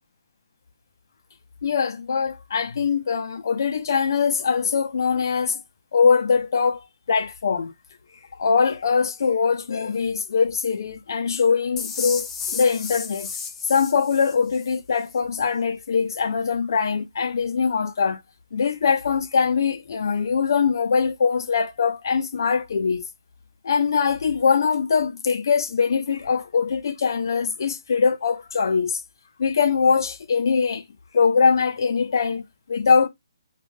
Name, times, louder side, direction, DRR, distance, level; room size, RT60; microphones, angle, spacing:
voice 1, 1.6-5.6 5.9-7.7 8.4-13.3 13.7-18.2 18.5-23.0 23.6-29.0 29.4-30.8 31.1-33.1, left 5 dB, 55° left, 0.6 m, -22 dB
sound 1, 11.8-14.8, left 5 dB, 10° left, 0.4 m, -33 dB
3.0 x 2.4 x 3.4 m
hypercardioid pair, 165°, 2 cm